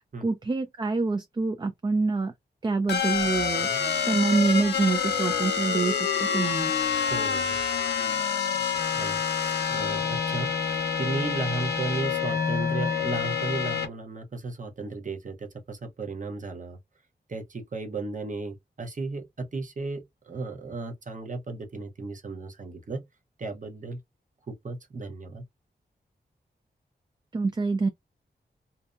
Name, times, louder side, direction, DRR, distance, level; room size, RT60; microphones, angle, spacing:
voice 1, 0.2-2.3 2.6-3.7 4.1-6.7 27.3-27.9, right 3 dB, 25° right, 0.3 m, -26 dB
sound 1, 2.9-13.9, left 6 dB, 75° left, 0.5 m, -27 dB
voice 2, 7.1-7.6 8.9-16.8 17.3-23.0 23.4-24.0 24.5-25.4, right 3 dB, 45° right, 0.8 m, -35 dB
2.6 x 2.2 x 2.3 m
wide cardioid pair, 90°, 17 cm